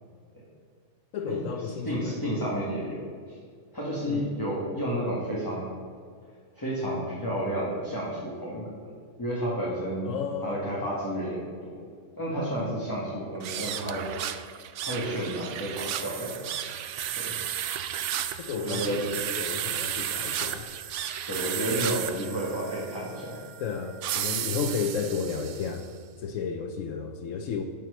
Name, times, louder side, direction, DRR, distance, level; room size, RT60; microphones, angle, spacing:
voice 1, 1.1-2.2 4.0-4.3 10.0-10.8 18.4-20.7 21.7-21.9 23.6-25.8 26.2-27.6, left 6 dB, 80° left, 5 dB, 1.0 m, -33 dB
voice 2, 1.6-3.4 3.7-5.7 6.5-8.7 9.2-10.1 10.4-11.8 12.2-14.1 14.8-16.4 17.2-17.3 18.5-19.0 21.3-23.4, equal, 15° left, -7 dB, 1.8 m, -31 dB
sound 1, 13.4-25.9, right 10 dB, 70° right, 0.9 m, -33 dB
10.5 x 4.6 x 6.5 m, 2.1 s
omnidirectional pair, 1.3 m